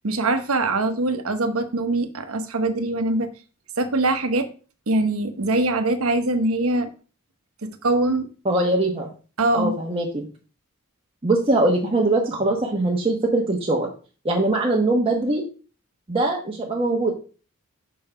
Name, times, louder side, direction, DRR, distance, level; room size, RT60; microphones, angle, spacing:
voice 1, 0.0-3.3 3.8-4.5 4.9-6.9 7.6-8.3 9.4-9.8, right 2 dB, 75° right, 8 dB, 1.0 m, -23 dB
voice 2, 8.4-9.1 9.5-10.3 11.2-13.9 14.2-15.4 16.1-17.1, right 2 dB, 25° right, -2 dB, 1.0 m, -22 dB
6.0 x 5.6 x 4.9 m, 0.37 s
head